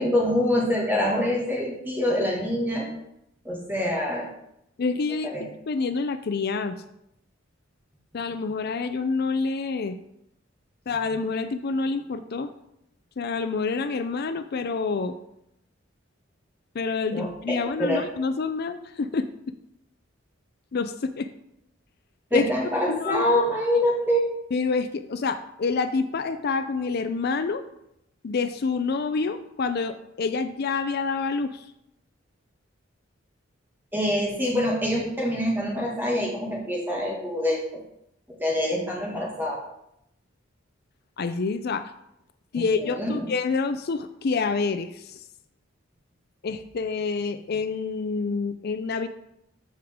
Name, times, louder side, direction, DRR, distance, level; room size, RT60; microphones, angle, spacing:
voice 1, 0.0-2.9 3.4-4.3 5.2-5.4 17.1-18.0 22.3-24.4 33.9-37.6 38.4-39.6 42.5-43.3, left 1 dB, 10° right, -3 dB, 2.2 m, -25 dB
voice 2, 4.8-5.3 5.7-6.8 8.1-10.0 10.9-12.5 13.2-15.1 16.7-19.5 20.7-21.3 22.3-22.5 22.9-23.3 24.5-27.6 28.2-31.7 41.2-41.9 42.5-45.2 46.4-49.1, left 4 dB, 55° left, 10 dB, 0.4 m, -27 dB
13.5 x 4.9 x 3.6 m, 0.79 s
head